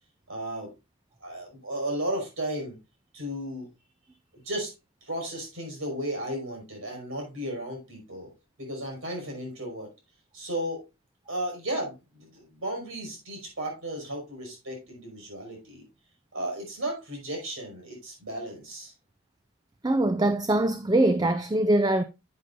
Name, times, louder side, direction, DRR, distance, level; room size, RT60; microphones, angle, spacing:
voice 1, 0.3-0.7 1.2-2.8 3.1-3.7 4.4-4.7 5.0-8.3 8.6-9.9 10.3-10.8 11.3-15.8 16.3-18.9, right 1 dB, 65° right, 5.5 m, -34 dB
voice 2, 19.8-22.0, right 1 dB, 20° right, 0.4 m, -23 dB
10.5 x 8.7 x 2.5 m
head